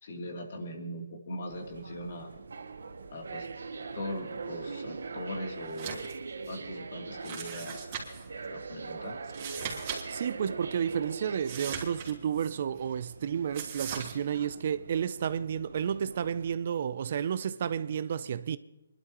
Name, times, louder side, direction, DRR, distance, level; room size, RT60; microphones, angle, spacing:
voice 1, 0.0-2.3 3.1-3.5 3.9-6.1 6.5-8.0 8.5-9.2, left 1 dB, 55° left, 2.9 m, -40 dB
sound 1, 1.5-16.5, right 4 dB, 80° right, 1.1 m, -42 dB
sound 2, 5.7-6.1 6.5-6.6 7.2-8.3 9.2-10.0 10.3-10.4 11.4-12.5 13.5-14.1, right 7 dB, 35° right, 3.1 m, -39 dB
voice 2, 9.7-18.6, right 8 dB, 50° right, 0.6 m, -32 dB
26.5 x 12.0 x 3.0 m
hypercardioid pair, 150°, 0 cm